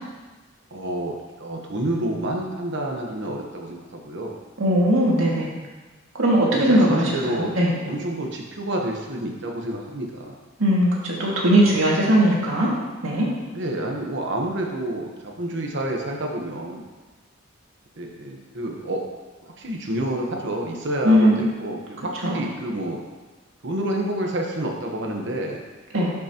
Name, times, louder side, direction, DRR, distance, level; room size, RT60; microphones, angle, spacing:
voice 1, 0.7-4.4 6.5-7.5 7.8-10.3 11.5-11.7 13.5-16.8 18.0-19.0 19.4-23.0 23.6-25.6, right 1 dB, 60° right, 1 dB, 1.1 m, -29 dB
voice 2, 4.6-5.5 6.2-7.7 10.6-12.7 13.0-13.3 21.0-21.4 22.2-22.4 25.9-26.1, equal, 90° right, -4 dB, 2.2 m, -19 dB
12.0 x 6.0 x 3.0 m, 1.2 s
head